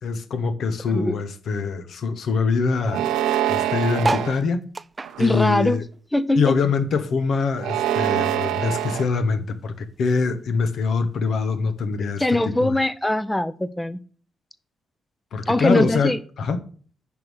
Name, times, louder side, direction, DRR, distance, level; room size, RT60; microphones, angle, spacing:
voice 1, 0.0-3.0 3.5-4.6 5.2-5.8 6.4-12.8 15.3-16.6, left 4 dB, 65° left, 1.0 m, -24 dB
sound 1, 2.9-4.3 5.0-5.6 7.5-9.1, right 11 dB, 75° right, 0.7 m, -24 dB
sound 2, 4.0-6.7 7.1-8.6 9.1-9.2 9.4-9.5 9.6-10.0 10.8-10.9, right 3 dB, 35° right, 0.4 m, -31 dB
voice 2, 5.2-5.8 6.1-6.6 12.2-14.0 15.5-16.2, left 1 dB, 15° left, 0.7 m, -21 dB
10.5 x 3.7 x 6.2 m
hypercardioid pair, 40°, 0 cm